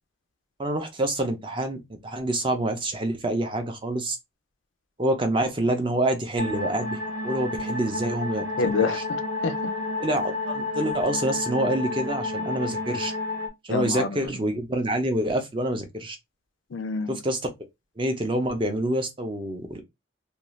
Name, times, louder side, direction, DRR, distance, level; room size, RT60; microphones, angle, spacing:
voice 1, 0.6-4.2 5.0-9.0 10.0-13.1 13.6-16.2 17.1-17.5 18.0-19.8, right 1 dB, 25° right, 0.5 m, -27 dB
sound 1, 6.4-13.5, left 2 dB, 80° right, 0.9 m, -30 dB
voice 2, 8.6-9.6 13.7-14.4 16.7-17.2, left 4 dB, 75° left, 0.4 m, -27 dB
2.5 x 2.3 x 3.0 m
head